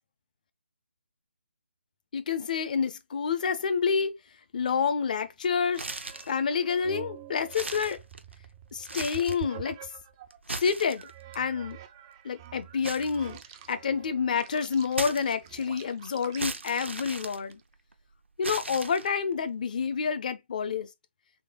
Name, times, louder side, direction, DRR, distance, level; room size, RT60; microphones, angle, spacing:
voice 1, 2.1-4.2 4.5-5.8 6.1-8.0 8.7-9.8 10.6-11.1 11.3-11.8 12.2-13.4 13.7-17.6 18.4-20.9, left 6 dB, 40° left, 0.6 m, -28 dB
sound 1, 5.4-10.4 11.0-17.6, right 11 dB, 20° right, 0.3 m, -47 dB
sound 2, 5.7-6.4 6.9-7.0 7.4-8.5 8.8-9.5 10.3-11.4 12.8-13.9 14.9-15.7 16.4-17.9 18.4-19.3, right 3 dB, 75° right, 0.7 m, -37 dB
3.7 x 3.3 x 3.0 m
figure-of-eight pair, 145°, 6 cm